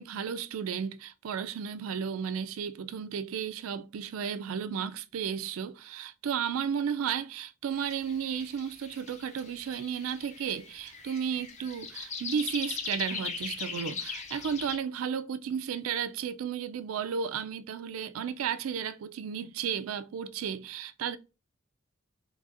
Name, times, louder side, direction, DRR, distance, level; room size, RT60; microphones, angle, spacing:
voice 1, 0.0-21.2, right 7 dB, 75° right, 0.4 m, -33 dB
sound 1, 7.7-14.8, left 5 dB, 35° left, 0.5 m, -40 dB
3.9 x 3.3 x 2.4 m
head